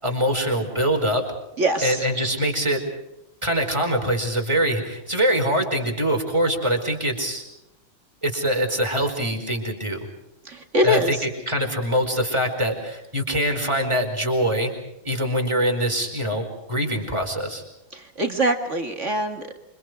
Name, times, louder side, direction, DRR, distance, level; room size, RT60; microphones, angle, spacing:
voice 1, 0.0-1.3 1.8-2.8 3.4-7.4 8.2-10.0 10.8-14.7 15.0-17.6, equal, 15° right, 3 dB, 4.9 m, -24 dB
voice 2, 1.6-2.1 10.4-11.3 17.9-19.6, equal, 35° right, 5 dB, 2.2 m, -23 dB
29.0 x 26.0 x 4.8 m, 0.91 s
omnidirectional pair, 2.2 m